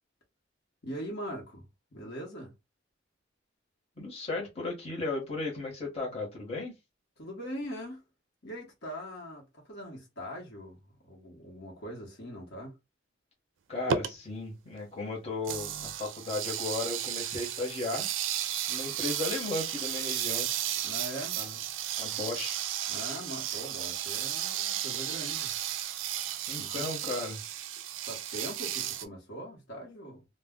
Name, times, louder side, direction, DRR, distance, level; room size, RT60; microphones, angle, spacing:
voice 1, 0.8-1.7 1.9-2.5 7.2-8.0 8.4-12.8 20.8-21.4 22.9-25.5 26.5-27.1 28.0-30.3, equal, 60° left, 1.0 m, -41 dB
voice 2, 4.0-6.7 13.7-18.1 18.7-20.5 21.4-21.6 22.0-22.6 26.5-27.4, left 3 dB, 30° left, 1.0 m, -35 dB
sound 1, 13.9-14.1 15.4-29.1, right 10 dB, 75° right, 0.4 m, -34 dB
2.2 x 2.1 x 3.5 m
head